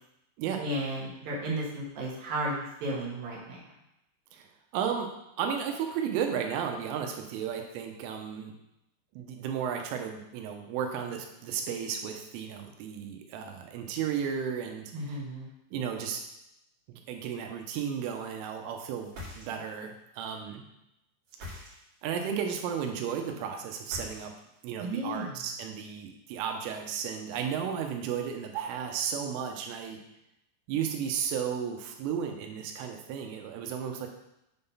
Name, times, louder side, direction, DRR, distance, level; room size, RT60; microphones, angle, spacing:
voice 1, 0.6-3.6 14.9-15.5 24.8-25.3, right 1 dB, 65° right, -4 dB, 2.5 m, -34 dB
voice 2, 4.7-5.1 5.4-8.5 9.1-15.2 15.7-16.2 16.9-20.6 21.4-21.6 22.0-24.3 24.6-30.0 30.7-34.1, right 7 dB, 90° right, 3 dB, 3.4 m, -34 dB
sound 1, 19.0-19.9 21.2-22.1 23.8-24.6, left 2 dB, 45° right, 2.5 m, -44 dB
8.8 x 3.8 x 5.5 m, 0.84 s
omnidirectional pair, 5.7 m